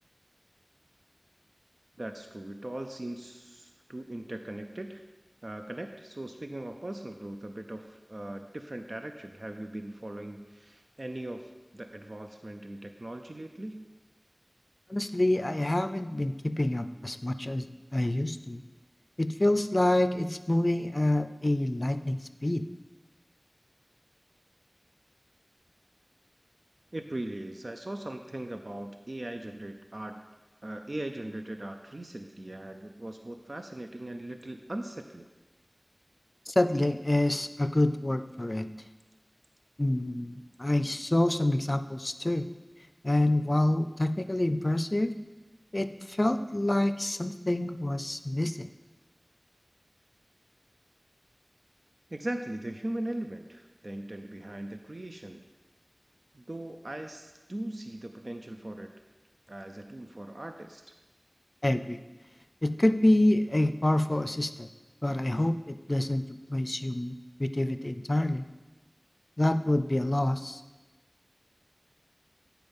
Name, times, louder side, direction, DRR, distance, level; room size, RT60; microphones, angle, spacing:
voice 1, 2.0-5.0 5.4-13.8 26.9-30.2 30.6-35.3 52.1-55.4 56.3-58.9 59.5-60.9, right 1 dB, 65° right, 5 dB, 0.4 m, -39 dB
voice 2, 14.9-17.7 17.9-18.6 19.2-22.6 36.5-38.7 39.8-42.5 43.0-45.1 45.7-48.7 61.6-62.0 62.6-64.7 65.0-66.2 66.5-67.1 67.4-68.4 69.4-70.6, left 1 dB, 45° left, 10 dB, 0.4 m, -27 dB
9.5 x 4.4 x 5.3 m, 1.2 s
wide cardioid pair, 45°, 0 cm